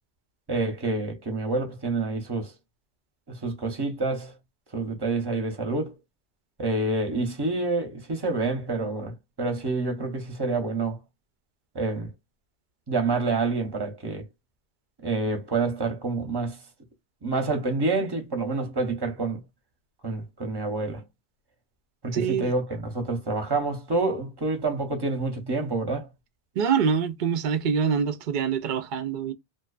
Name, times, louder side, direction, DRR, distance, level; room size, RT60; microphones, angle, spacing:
voice 1, 0.5-2.5 3.3-4.3 4.7-6.0 6.6-11.0 11.7-12.1 12.9-14.3 15.0-16.6 17.2-19.4 20.0-21.0 22.0-26.1, right 3 dB, 25° right, 0.8 m, -28 dB
voice 2, 22.1-22.5 26.6-29.3, right 7 dB, 55° right, 0.6 m, -25 dB
2.7 x 2.1 x 2.3 m
omnidirectional pair, 1.2 m